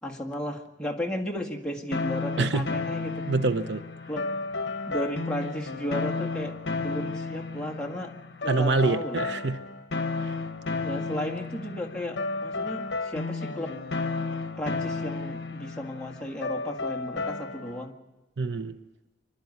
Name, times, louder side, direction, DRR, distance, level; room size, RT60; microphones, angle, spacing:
voice 1, 0.0-3.3 4.1-4.3 4.9-8.1 8.4-9.3 10.8-13.7 14.6-18.0, equal, 5° left, -2 dB, 1.8 m, -34 dB
sound 1, 1.9-17.8, left 3 dB, 60° left, 1.2 m, -32 dB
voice 2, 3.3-3.8 8.5-9.6 10.2-10.4 18.4-18.8, right 3 dB, 65° right, 10 dB, 0.8 m, -25 dB
25.5 x 12.0 x 9.6 m, 1.1 s
head